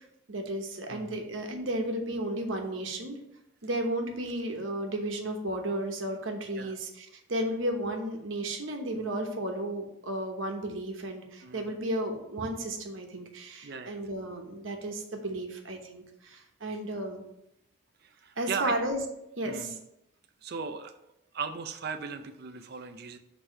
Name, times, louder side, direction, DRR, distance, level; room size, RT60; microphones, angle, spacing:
voice 1, 0.3-3.2 3.6-17.2 18.4-19.0 19.4-19.8, right 1 dB, 80° right, 3 dB, 1.0 m, -33 dB
voice 2, 11.4-11.8 13.6-14.0 18.0-18.7 19.4-19.8 20.4-20.9 21.3-23.2, right 5 dB, 50° right, 8 dB, 0.4 m, -37 dB
6.3 x 3.0 x 5.5 m, 0.81 s
head